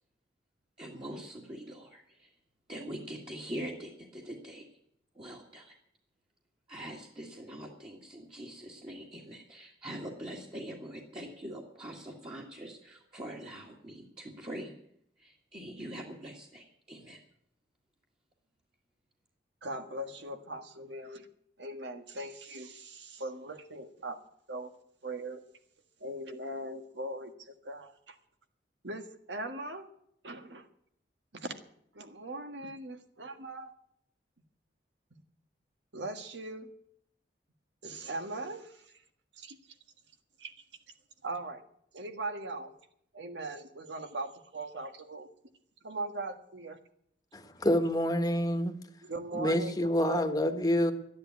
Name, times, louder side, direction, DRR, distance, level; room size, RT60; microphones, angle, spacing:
voice 1, 0.8-2.3 2.7-4.7 5.2-5.7 6.7-14.7 15.2-17.2, right 1 dB, 30° right, -2 dB, 1.8 m, -43 dB
voice 2, 19.6-21.3 21.6-24.2 24.5-24.7 25.0-25.4 26.0-28.2 28.8-29.9 30.2-30.7 31.3-31.5 31.9-33.7 35.9-36.7 37.8-38.9 39.3-39.6 40.4-40.5 41.2-41.6 41.9-42.7 43.1-45.3 45.8-46.8 48.2-48.3 49.0-49.8 50.0-50.2, right 2 dB, 90° right, 7 dB, 1.6 m, -40 dB
voice 3, 47.3-48.7 49.3-50.9, equal, 20° left, 7 dB, 1.3 m, -27 dB
12.5 x 10.5 x 9.5 m, 0.71 s
head